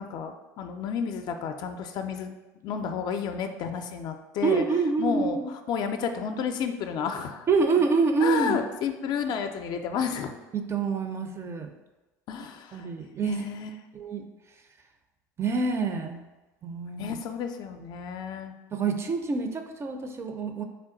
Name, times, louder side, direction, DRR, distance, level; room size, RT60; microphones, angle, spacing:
voice 1, 0.0-2.4 2.6-4.6 5.0-5.4 5.7-7.4 8.2-10.3 12.3-12.9 13.2-13.7 17.0-18.5, left 7 dB, 50° left, 6 dB, 0.4 m, -31 dB
voice 2, 4.4-5.5 7.5-8.6 10.5-11.7 12.7-13.4 13.9-14.2 15.4-16.2 16.6-17.2 18.7-20.6, right 4 dB, 30° right, 6 dB, 0.4 m, -26 dB
3.4 x 2.2 x 3.8 m, 1.1 s
hypercardioid pair, 85°, 9 cm